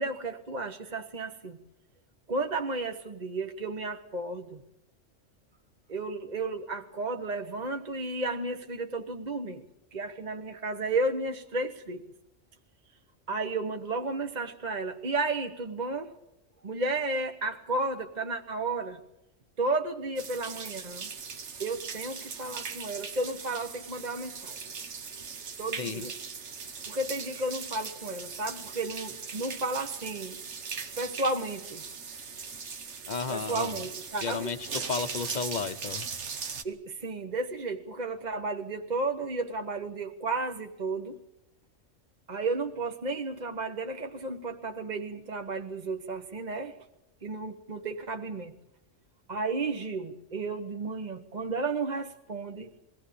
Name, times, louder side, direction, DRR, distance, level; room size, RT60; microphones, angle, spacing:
voice 1, 0.0-1.6 2.3-4.6 5.9-9.6 9.9-12.0 13.3-16.1 16.6-19.0 19.6-21.1 21.6-24.6 25.6-26.1 26.9-30.4 31.0-31.8 33.3-34.5 36.6-41.2 42.3-46.7 47.2-48.5 49.3-52.7, right 3 dB, 35° right, 4 dB, 1.1 m, -33 dB
sound 1, 20.2-36.6, right 5 dB, 65° right, 1.5 m, -39 dB
voice 2, 25.8-26.1 33.1-33.8 34.2-36.0, left 5 dB, 40° left, 12 dB, 1.0 m, -33 dB
22.0 x 17.0 x 8.6 m, 0.87 s
omnidirectional pair, 1.3 m